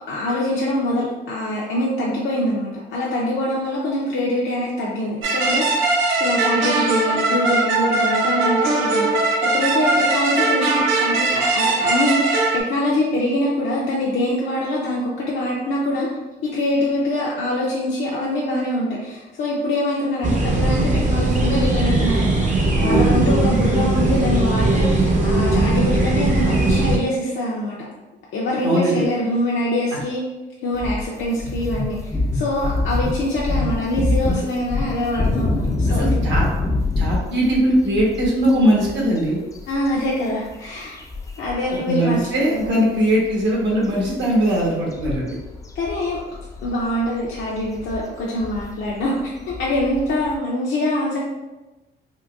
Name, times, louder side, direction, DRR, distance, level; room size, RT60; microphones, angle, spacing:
voice 1, 0.1-16.1 16.4-27.9 28.3-30.2 30.6-32.0 32.3-36.2 39.7-41.0 41.4-42.2 42.5-42.9 45.7-46.2 46.6-51.2, left 1 dB, 70° left, -5 dB, 0.6 m, -24 dB
sound 1, 5.2-12.6, right 3 dB, 90° right, 0.6 m, -20 dB
sound 2, 20.2-27.0, right 2 dB, 40° right, 0.7 m, -19 dB
voice 2, 22.7-23.3 28.6-29.0 29.9-30.0 35.9-36.5 37.0-39.4 41.9-45.4, right 1 dB, 65° right, -3 dB, 1.2 m, -20 dB
sound 3, 30.7-41.8 42.1-42.3 42.6-50.4, left 2 dB, 15° left, 0.4 m, -25 dB
3.8 x 2.2 x 2.4 m, 1.1 s
cardioid pair, 90°, 20 cm